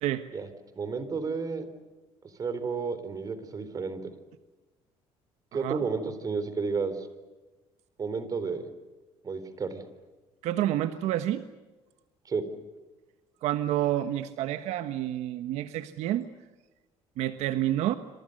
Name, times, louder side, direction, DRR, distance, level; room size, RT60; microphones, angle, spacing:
voice 1, 0.8-1.7 2.4-4.1 5.5-7.1 8.0-8.6 9.2-9.8 12.3-12.4, right 5 dB, 30° right, 12 dB, 4.0 m, -31 dB
voice 2, 10.4-11.5 13.4-16.3 17.2-17.9, right 13 dB, 75° right, 10 dB, 1.3 m, -29 dB
27.0 x 27.0 x 6.7 m, 1.2 s
cardioid pair, 135°, 12 cm